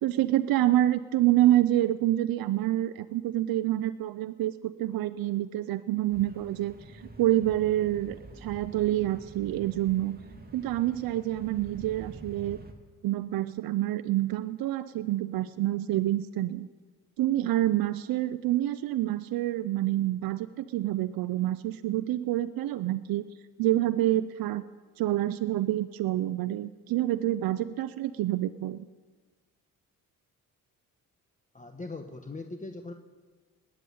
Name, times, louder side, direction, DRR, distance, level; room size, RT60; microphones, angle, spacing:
voice 1, 0.0-10.2 10.5-12.6 13.0-16.7 17.2-23.3 23.6-24.6 25.0-28.9, right 14 dB, 85° right, 11 dB, 0.6 m, -27 dB
sound 1, 6.1-12.7, right 2 dB, 25° right, 2.4 m, -47 dB
voice 2, 31.5-32.9, left 3 dB, 20° left, 5 dB, 1.2 m, -40 dB
19.5 x 7.8 x 9.4 m, 1.4 s
cardioid pair, 75°, 34 cm